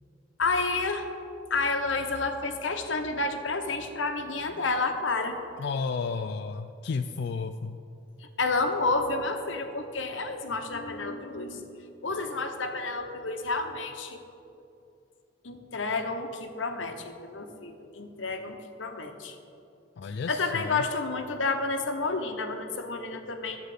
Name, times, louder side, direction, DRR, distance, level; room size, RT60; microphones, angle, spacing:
voice 1, 0.4-1.1 1.5-5.4 8.4-11.7 12.0-14.2 15.4-19.4 20.3-23.6, left 3 dB, 85° left, 6 dB, 1.0 m, -30 dB
voice 2, 5.6-7.8 20.0-20.8, left 4 dB, 60° left, 7 dB, 0.3 m, -32 dB
12.0 x 7.9 x 5.0 m, 2.6 s
head